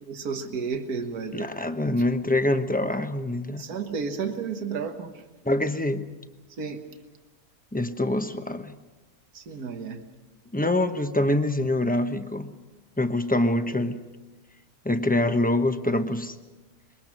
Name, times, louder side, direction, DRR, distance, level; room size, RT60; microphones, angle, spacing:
voice 1, 0.0-1.5 3.6-5.3 6.6-6.8 9.3-10.0, right 5 dB, 80° right, 6 dB, 1.9 m, -32 dB
voice 2, 1.3-3.6 5.4-6.0 7.7-8.7 10.5-12.5 13.0-14.0 14.8-16.4, left 1 dB, 5° left, 8 dB, 0.8 m, -25 dB
25.5 x 22.5 x 6.1 m, 1.1 s
omnidirectional pair, 1.6 m